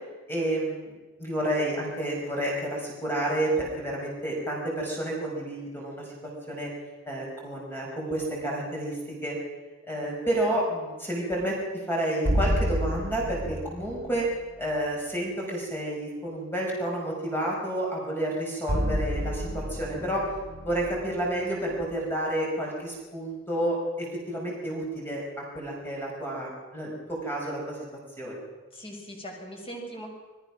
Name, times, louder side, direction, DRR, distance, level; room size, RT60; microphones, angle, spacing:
voice 1, 0.3-0.9 1.2-6.0 6.5-6.7 7.1-9.0 9.2-9.4 9.9-11.5 11.9-14.3 14.6-20.3 20.7-25.2 25.5-27.8 28.2-28.4, right 1 dB, 10° left, -2 dB, 5.5 m, -30 dB
sound 1, 12.3-14.4 18.7-21.9, equal, 55° right, 3.1 m, -30 dB
voice 2, 28.7-30.1, right 1 dB, 30° left, 0 dB, 6.3 m, -41 dB
28.0 x 20.0 x 6.1 m, 1.2 s
head